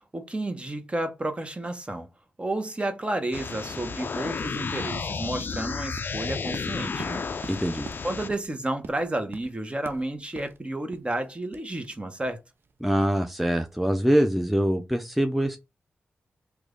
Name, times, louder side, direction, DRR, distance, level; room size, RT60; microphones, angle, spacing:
voice 1, 0.1-2.1 2.4-7.2 8.0-12.4, right 1 dB, 25° right, 0.8 m, -31 dB
sound 1, 3.3-8.3, left 5 dB, 55° left, 0.3 m, -32 dB
sound 2, 5.1-13.9, right 5 dB, 60° right, 0.4 m, -47 dB
voice 2, 7.5-7.9 12.8-15.6, equal, ahead, 0.5 m, -24 dB
3.1 x 2.2 x 3.7 m
cardioid pair, 45°, 4 cm